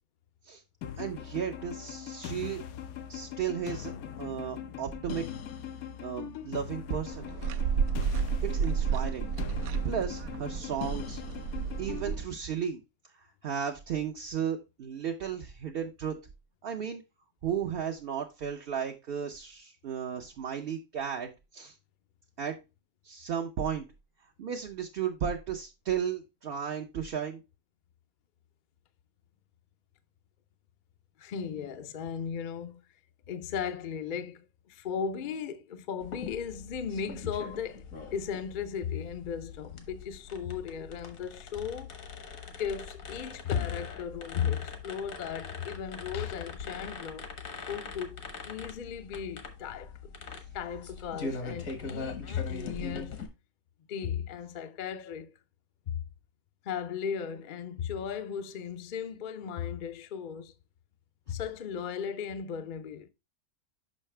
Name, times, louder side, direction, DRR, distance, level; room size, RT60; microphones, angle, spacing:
sound 1, 0.8-12.2, left 9 dB, 85° left, 1.1 m, -41 dB
voice 1, 1.0-2.6 3.1-3.9 4.2-5.2 6.0-7.3 8.4-9.3 9.8-11.2 11.8-12.8 13.4-16.2 16.6-17.0 17.4-21.7 22.4-22.6 23.0-23.9 24.4-27.4, right 8 dB, 55° right, 0.7 m, -34 dB
sound 2, 7.1-12.3, right 6 dB, 75° right, 1.0 m, -31 dB
voice 2, 31.2-32.8 33.3-37.8 38.1-41.9 42.6-47.3 47.7-48.2 48.4-50.0 50.5-53.2 53.9-55.4 55.9-56.0 56.6-60.5 61.3-63.1, left 7 dB, 55° left, 0.6 m, -36 dB
sound 3, 36.0-53.3, left 4 dB, 70° left, 1.5 m, -42 dB
6.4 x 5.6 x 3.2 m
omnidirectional pair, 1.5 m